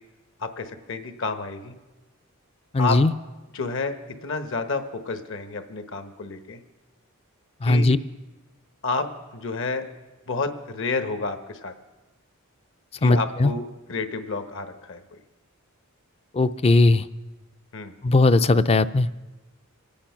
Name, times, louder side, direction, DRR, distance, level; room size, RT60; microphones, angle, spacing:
voice 1, 0.4-1.7 2.8-3.0 3.5-6.6 7.6-7.9 8.8-9.9 10.3-11.7 13.0-15.0 17.7-17.9, left 3 dB, 60° left, 8 dB, 1.2 m, -30 dB
voice 2, 2.7-3.1 7.6-8.0 13.0-13.5 16.3-17.1 18.0-19.1, left 2 dB, 25° left, 14 dB, 0.4 m, -18 dB
25.0 x 8.8 x 5.8 m, 1.2 s
head